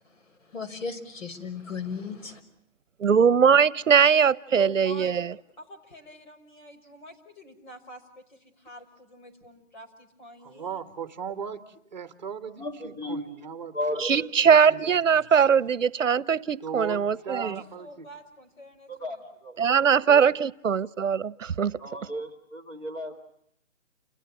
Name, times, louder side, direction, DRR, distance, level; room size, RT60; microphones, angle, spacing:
voice 1, 0.4-2.4, left 5 dB, 80° left, 6.2 m, -36 dB
voice 2, 3.0-5.3 14.0-17.6 19.6-21.8, right 7 dB, 75° right, 1.0 m, -21 dB
voice 3, 4.5-5.1 5.6-10.8 17.3-19.2, left 1 dB, 40° left, 5.8 m, -46 dB
voice 4, 10.4-14.0 14.4-15.5 16.6-18.1, right 7 dB, 35° right, 1.7 m, -38 dB
voice 5, 12.6-13.2 13.7-14.3 18.9-19.2 19.7-20.2 21.8-23.2, left 1 dB, 10° left, 2.5 m, -34 dB
30.0 x 29.5 x 6.2 m
hypercardioid pair, 175°, 38 cm